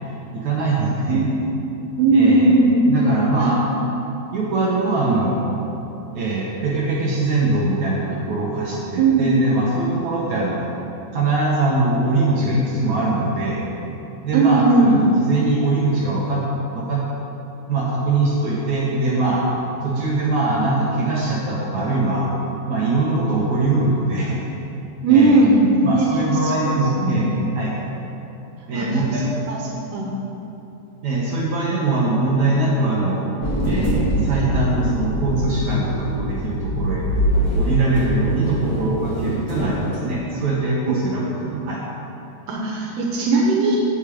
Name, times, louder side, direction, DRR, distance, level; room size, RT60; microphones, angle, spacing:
voice 1, 0.3-1.3 2.1-3.6 4.3-5.6 6.1-10.7 11.1-13.6 14.2-16.4 16.7-17.0 17.7-19.4 19.8-22.3 22.7-24.4 25.1-25.4 25.8-27.3 27.6-27.7 28.7-29.3 31.0-33.3 33.6-37.1 37.5-41.8, right 2 dB, 60° right, -5 dB, 2.3 m, -22 dB
voice 2, 2.0-2.8 3.4-3.5 9.0-9.3 14.3-15.0 25.0-26.1 26.6-27.3 28.7-28.9 29.5-29.6 29.9-30.1 40.9-41.0 42.5-43.8, right 3 dB, 75° right, -2 dB, 3.2 m, -17 dB
sound 1, 33.4-40.0, right 1 dB, 35° left, 1.9 m, -23 dB
10.0 x 7.4 x 8.6 m, 2.9 s
omnidirectional pair, 4.8 m